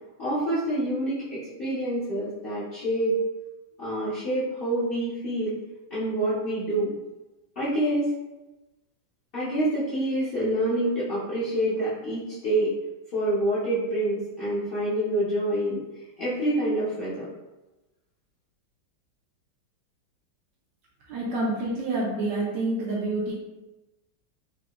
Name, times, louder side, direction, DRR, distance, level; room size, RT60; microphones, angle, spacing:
voice 1, 0.2-3.1 3.8-5.6 5.9-6.9 7.6-8.1 9.3-12.7 13.1-15.8 16.2-17.3, right 1 dB, 55° left, -11 dB, 0.6 m, -27 dB
voice 2, 21.1-23.3, right 2 dB, 75° right, -4 dB, 1.2 m, -28 dB
4.8 x 2.1 x 2.3 m, 1.1 s
omnidirectional pair, 2.1 m